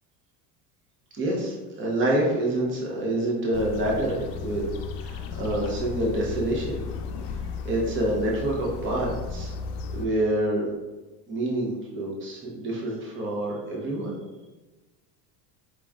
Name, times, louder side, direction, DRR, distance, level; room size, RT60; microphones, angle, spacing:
voice 1, 1.1-4.6 5.0-6.8 7.3-9.5 9.9-10.7 11.3-14.1, right 1 dB, 25° right, -3 dB, 0.9 m, -27 dB
sound 1, 3.5-10.1, left 5 dB, 75° left, 0.6 m, -35 dB
4.8 x 3.9 x 2.4 m, 1.2 s
cardioid pair, 140°, 48 cm